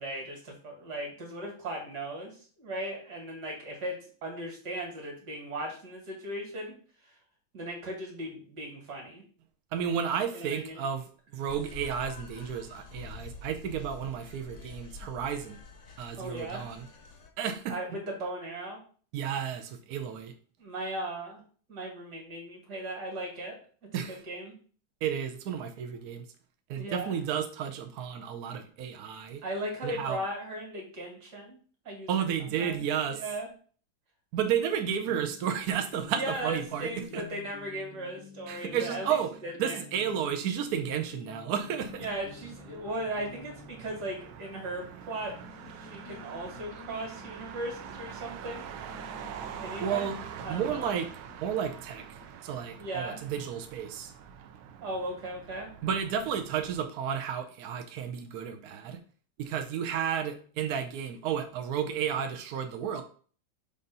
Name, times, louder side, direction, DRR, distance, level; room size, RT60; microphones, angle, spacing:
voice 1, 0.0-6.7 7.0-7.2 7.5-9.2 10.3-10.8 16.2-16.7 17.7-18.8 20.6-21.4 21.7-23.6 24.1-24.5 26.7-27.2 29.4-31.6 31.8-33.5 36.2-39.8 42.0-45.4 45.7-49.0 49.6-50.1 50.4-50.9 52.8-53.2 54.8-55.7, right 1 dB, 55° right, 0 dB, 2.4 m, -37 dB
voice 2, 9.7-15.6 16.0-16.9 17.4-17.7 19.1-20.3 23.9-24.2 25.0-26.2 26.7-29.4 29.8-30.2 32.1-33.2 34.3-37.2 38.5-39.3 39.6-42.1 49.8-50.2 50.5-51.1 51.4-54.1 55.8-59.0 59.4-63.0, right 8 dB, 70° right, 6 dB, 0.9 m, -32 dB
sound 1, 11.5-17.3, left 3 dB, 50° left, 0.9 m, -47 dB
sound 2, 35.0-52.3, left 7 dB, 75° left, 0.9 m, -51 dB
Motor vehicle (road), 41.8-56.8, right 8 dB, 90° right, 1.4 m, -45 dB
6.9 x 2.6 x 5.3 m, 0.43 s
omnidirectional pair, 2.2 m